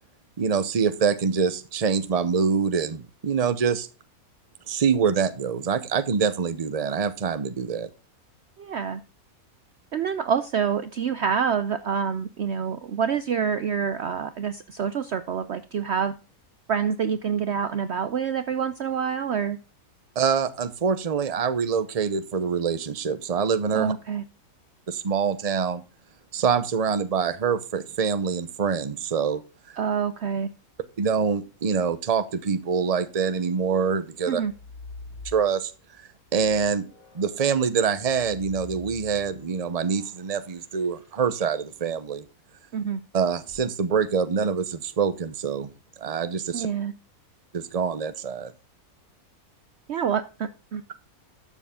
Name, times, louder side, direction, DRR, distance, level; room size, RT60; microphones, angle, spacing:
voice 1, 0.4-3.9 4.7-7.9 20.2-23.9 24.9-25.8 26.3-29.4 31.0-34.4 35.3-35.7 36.3-36.9 37.1-42.2 43.1-45.7 46.0-46.7 47.5-48.5, right 6 dB, 30° right, 13 dB, 0.8 m, -25 dB
voice 2, 8.6-9.0 9.9-16.2 16.7-19.6 23.7-24.2 29.8-30.5 34.3-34.5 42.7-43.0 46.5-46.9 49.9-50.8, right 7 dB, 60° right, 12 dB, 0.8 m, -27 dB
sound 1, 34.3-35.8 36.2-41.7 43.3-43.6, left 3 dB, 50° left, 5.7 m, -46 dB
13.0 x 7.0 x 3.6 m, 0.32 s
omnidirectional pair, 1.6 m